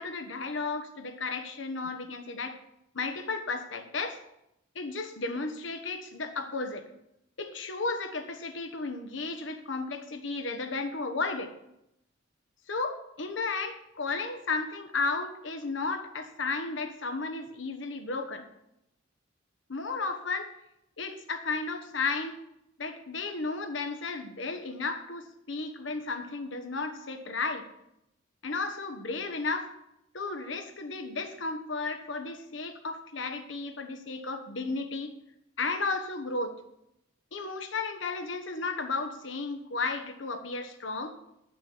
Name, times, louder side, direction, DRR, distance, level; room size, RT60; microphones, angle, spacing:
voice 1, 0.0-2.6 2.9-4.2 4.7-6.9 7.4-11.5 12.7-18.5 19.7-20.5 21.0-22.4 22.8-27.7 28.4-29.7 30.1-35.1 35.6-36.5 37.3-41.2, left 3 dB, 70° left, 7 dB, 1.1 m, -34 dB
10.0 x 6.0 x 7.8 m, 0.82 s
head